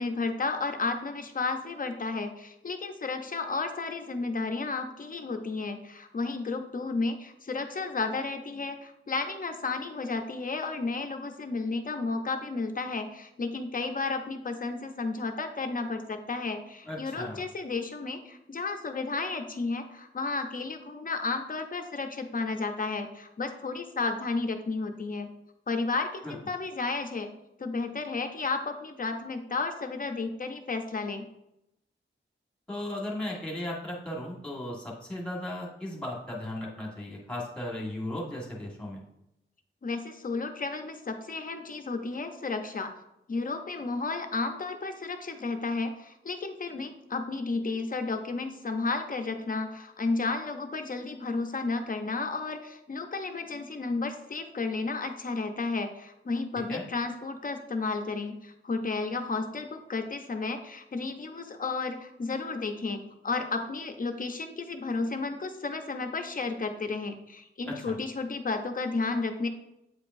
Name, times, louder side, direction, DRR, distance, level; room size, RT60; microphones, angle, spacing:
voice 1, 0.0-25.3 25.7-27.3 27.6-31.2 39.8-42.9 43.3-69.5, left 3 dB, 40° left, 6 dB, 0.6 m, -32 dB
voice 2, 16.8-17.4 26.2-26.3 32.7-39.0 56.7-56.8 67.7-68.0, left 1 dB, 5° left, -3 dB, 1.6 m, -36 dB
8.5 x 4.9 x 2.6 m, 0.85 s
wide cardioid pair, 155°, 21 cm